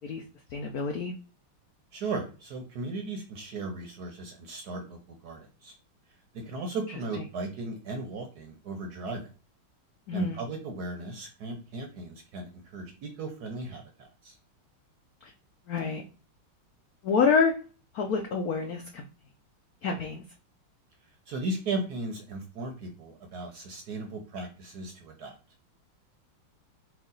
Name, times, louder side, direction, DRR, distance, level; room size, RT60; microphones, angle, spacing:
voice 1, 0.5-1.1 10.1-10.4 15.7-16.0 17.0-17.6 17.9-19.0 19.8-20.2, left 5 dB, 80° left, 3 dB, 0.8 m, -27 dB
voice 2, 1.9-5.7 6.5-9.3 10.1-14.4 21.3-25.3, right 3 dB, 65° right, 3 dB, 1.0 m, -36 dB
4.5 x 2.4 x 3.9 m, 0.36 s
omnidirectional pair, 2.3 m